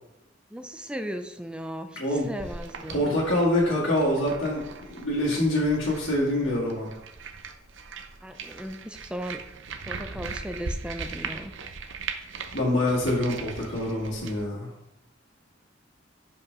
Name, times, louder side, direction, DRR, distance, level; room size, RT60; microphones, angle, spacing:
voice 1, 0.5-3.0 8.2-9.4 9.9-11.5, equal, 5° right, 7 dB, 0.5 m, -37 dB
voice 2, 2.0-2.3 2.9-6.9 12.5-14.7, left 1 dB, 85° left, -7 dB, 2.1 m, -25 dB
sound 1, 2.1-14.4, right 4 dB, 75° right, 0.7 m, -39 dB
5.3 x 5.2 x 5.4 m, 0.84 s
head